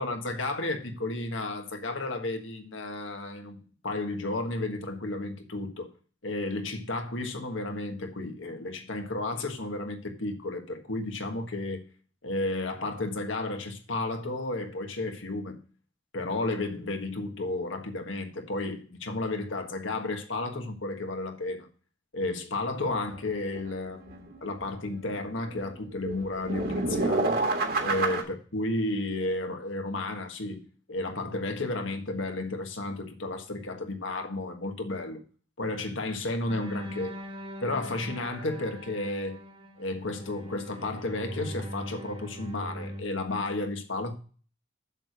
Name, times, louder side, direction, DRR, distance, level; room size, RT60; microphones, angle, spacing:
voice 1, 0.0-5.9 6.2-11.9 12.2-15.6 16.1-21.7 22.1-27.4 27.8-35.2 35.6-37.2 37.6-39.4 39.8-44.1, left 2 dB, 80° left, 1.5 m, -32 dB
sound 1, 22.9-23.0 23.1-23.2 23.5-23.6 24.1-25.2 25.5-28.2, right 2 dB, 50° right, 1.5 m, -28 dB
sound 2, 36.5-43.0, equal, 30° right, 1.4 m, -41 dB
7.4 x 6.8 x 6.3 m
head